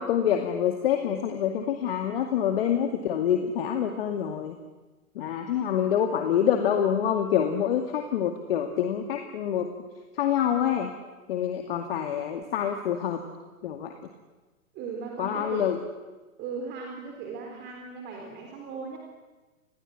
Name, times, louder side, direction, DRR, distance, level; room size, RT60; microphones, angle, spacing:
voice 1, 0.0-4.5 5.2-9.7 10.1-10.9 11.3-13.2 13.6-13.9 15.2-15.8, left 9 dB, 40° left, 4 dB, 2.2 m, -26 dB
voice 2, 14.7-15.7 16.4-19.0, right 5 dB, 25° right, 2 dB, 3.9 m, -37 dB
28.0 x 20.5 x 7.8 m, 1.2 s
figure-of-eight pair, 115°, 43 cm